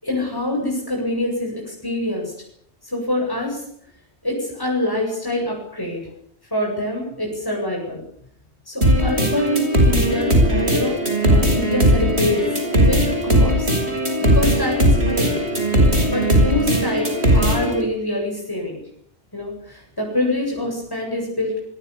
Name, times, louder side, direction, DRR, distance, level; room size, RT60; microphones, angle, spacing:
voice 1, 0.0-2.5 2.8-3.6 4.2-6.1 6.5-8.0 8.7-11.0 11.3-12.5 12.8-13.7 14.2-15.3 16.1-18.8 19.3-21.6, left 1 dB, 20° left, 0 dB, 8.0 m, -25 dB
sound 1, 8.8-17.8, equal, 70° right, 6.8 m, -18 dB
sound 2, 10.1-17.4, right 1 dB, 70° left, 7.1 m, -37 dB
27.5 x 22.5 x 7.0 m, 0.66 s
omnidirectional pair, 1.1 m